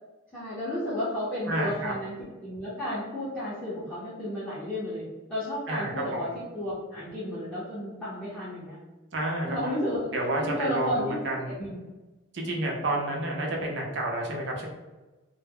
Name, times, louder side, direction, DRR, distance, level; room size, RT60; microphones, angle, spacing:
voice 1, 0.3-2.1 2.4-6.3 6.5-8.8 9.5-10.1 10.4-11.2 11.5-11.8, left 1 dB, 5° left, -12 dB, 0.6 m, -32 dB
voice 2, 1.5-1.9 5.7-6.3 9.1-9.6 10.1-11.5 12.3-14.7, right 1 dB, 55° right, -1 dB, 0.5 m, -30 dB
2.1 x 2.0 x 3.4 m, 1.2 s
head